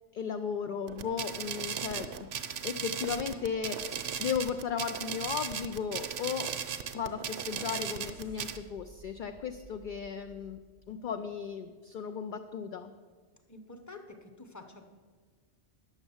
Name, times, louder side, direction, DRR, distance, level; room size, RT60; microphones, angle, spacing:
voice 1, 0.1-2.3 2.6-6.5 6.9-10.6 10.9-12.9, left 7 dB, 60° left, 7 dB, 0.5 m, -35 dB
sound 1, 0.9-8.6, right 8 dB, 65° right, 0.9 m, -37 dB
sound 2, 6.8-11.7, right 2 dB, 80° left, 3.4 m, -57 dB
voice 2, 13.5-14.9, left 2 dB, 15° left, 6 dB, 0.8 m, -48 dB
9.7 x 7.0 x 7.0 m, 1.5 s
omnidirectional pair, 1.2 m